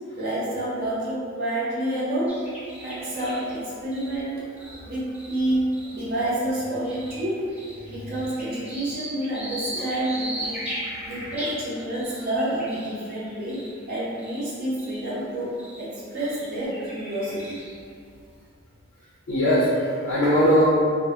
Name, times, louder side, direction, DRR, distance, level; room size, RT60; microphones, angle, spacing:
voice 1, 0.2-2.4 2.8-4.5 4.8-7.4 7.9-10.6 11.0-13.6 13.9-17.6, right 1 dB, 45° right, -8 dB, 0.6 m, -28 dB
sound 1, 2.3-6.1 6.6-14.5 14.8-15.0 15.6-15.8 16.2-17.9, right 1 dB, 5° right, 0.3 m, -38 dB
voice 2, 19.3-20.8, equal, 65° left, -8 dB, 0.5 m, -20 dB
2.1 x 2.0 x 2.8 m, 2.2 s
head